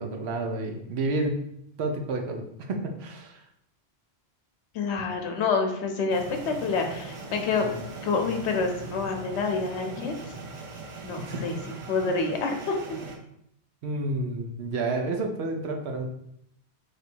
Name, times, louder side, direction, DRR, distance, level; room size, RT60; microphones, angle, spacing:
voice 1, 0.0-1.4 1.8-3.4 7.6-7.7 11.2-11.7 13.8-16.1, right 2 dB, 75° right, 3 dB, 0.9 m, -30 dB
voice 2, 4.7-7.7 8.0-10.1 11.0-11.6 11.9-13.0, left 4 dB, 85° left, 4 dB, 0.9 m, -27 dB
sound 1, 6.1-13.2, right 3 dB, 50° right, 0.4 m, -40 dB
3.3 x 2.5 x 4.3 m, 0.74 s
omnidirectional pair, 1.1 m